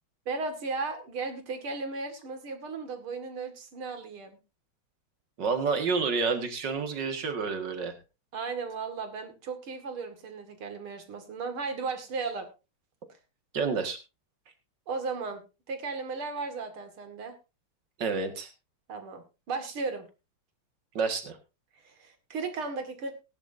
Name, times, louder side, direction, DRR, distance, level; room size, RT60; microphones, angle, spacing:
voice 1, 0.3-4.4 8.3-12.5 14.9-17.3 18.9-20.1 21.7-23.1, right 4 dB, 85° right, 6 dB, 3.0 m, -35 dB
voice 2, 5.4-8.0 13.5-14.0 18.0-18.5 20.9-21.4, right 4 dB, 55° right, 6 dB, 2.4 m, -29 dB
19.0 x 10.5 x 2.7 m, 0.28 s
omnidirectional pair, 2.3 m